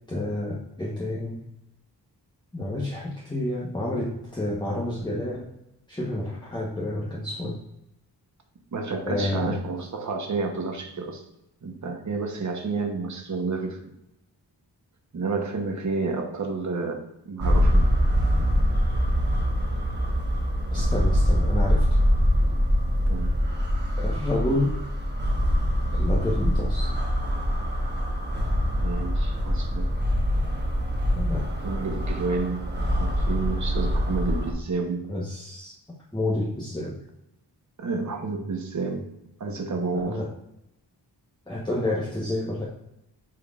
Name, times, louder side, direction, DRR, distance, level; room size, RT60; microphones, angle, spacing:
voice 1, 0.1-1.4 2.5-5.5 5.9-7.6 9.1-9.6 20.7-22.0 24.0-24.7 25.9-26.9 31.1-31.5 35.1-35.8 36.1-37.0 39.9-40.3 41.5-42.7, left 1 dB, 10° left, -4 dB, 1.0 m, -29 dB
voice 2, 8.7-11.2 11.6-13.9 15.1-17.9 23.0-23.3 28.7-30.0 31.6-32.7 33.0-35.1 37.8-39.1 39.4-40.2, right 4 dB, 40° right, 3 dB, 1.0 m, -30 dB
sound 1, 17.4-34.5, equal, 25° right, 1.2 m, -24 dB
8.5 x 4.5 x 2.4 m, 0.85 s
wide cardioid pair, 120°, 42 cm